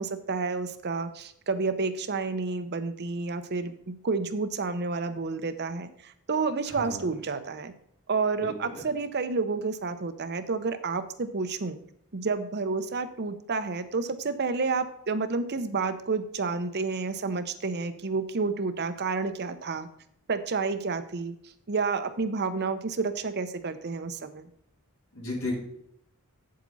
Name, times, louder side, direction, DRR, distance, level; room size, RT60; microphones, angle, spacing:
voice 1, 0.0-7.7 8.1-11.8 12.1-19.9 20.3-21.4 21.7-24.5, right 4 dB, 50° right, 10 dB, 0.7 m, -30 dB
voice 2, 6.7-7.1 8.4-8.8 25.1-25.5, left 2 dB, 65° left, -2 dB, 3.9 m, -35 dB
8.2 x 7.7 x 4.1 m, 0.72 s
head